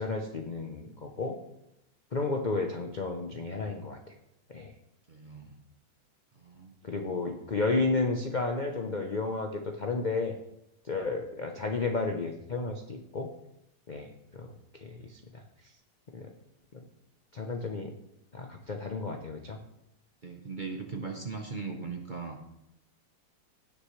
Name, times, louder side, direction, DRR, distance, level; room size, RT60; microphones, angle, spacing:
voice 1, 0.0-1.4 2.1-4.0 4.5-4.7 6.8-10.3 10.8-13.3 13.9-15.4 16.1-16.3 16.7-16.8 17.3-17.9 18.3-19.6, left 3 dB, 60° left, 3 dB, 0.4 m, -32 dB
voice 2, 5.1-5.6 6.3-6.7 19.1-19.2 20.2-22.4, right 4 dB, 40° right, 3 dB, 0.7 m, -39 dB
17.0 x 6.5 x 3.2 m, 0.85 s
omnidirectional pair, 2.0 m